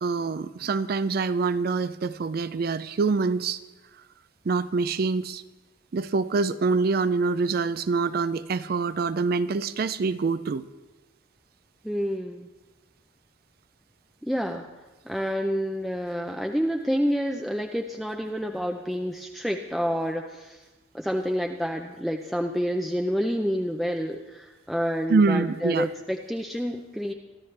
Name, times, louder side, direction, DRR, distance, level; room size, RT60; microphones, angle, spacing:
voice 1, 0.0-3.6 4.5-5.4 5.9-10.6 25.1-25.9, right 4 dB, 50° right, 13 dB, 0.4 m, -25 dB
voice 2, 11.8-12.5 14.2-14.7 15.0-20.6 20.9-27.1, equal, ahead, 2 dB, 0.5 m, -28 dB
24.0 x 13.0 x 3.3 m, 1.1 s
head